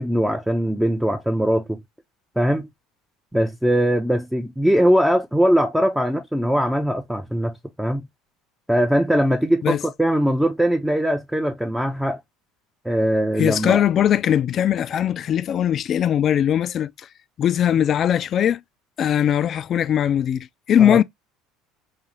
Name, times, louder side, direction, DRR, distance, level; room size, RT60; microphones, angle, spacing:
voice 1, 0.0-1.8 2.4-2.7 3.3-8.1 8.7-12.2 12.8-13.8 20.8-21.0, equal, 5° right, 0.6 m, -21 dB
voice 2, 13.4-16.9 17.4-18.6 19.0-21.0, left 10 dB, 45° left, 0.3 m, -20 dB
3.9 x 2.8 x 3.0 m
hypercardioid pair, 75°, 0 cm